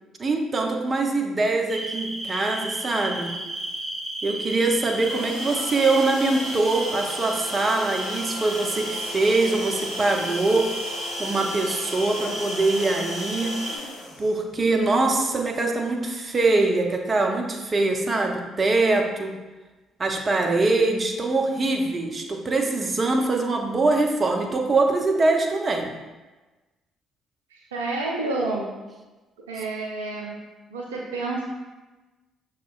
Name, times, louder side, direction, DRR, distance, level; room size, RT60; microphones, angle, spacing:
voice 1, 0.2-3.3 4.2-10.7 11.2-13.6 14.2-19.3 20.0-25.9, right 3 dB, 35° right, 2 dB, 0.6 m, -23 dB
sound 1, 1.7-13.8, right 1 dB, 20° right, 0.9 m, -33 dB
sound 2, 4.8-14.8, left 1 dB, 70° left, 0.8 m, -36 dB
voice 2, 27.5-28.7 29.5-30.4 30.7-31.4, right 2 dB, 85° right, -2 dB, 0.4 m, -29 dB
6.1 x 2.9 x 2.4 m, 1.2 s
hypercardioid pair, 45°, 0 cm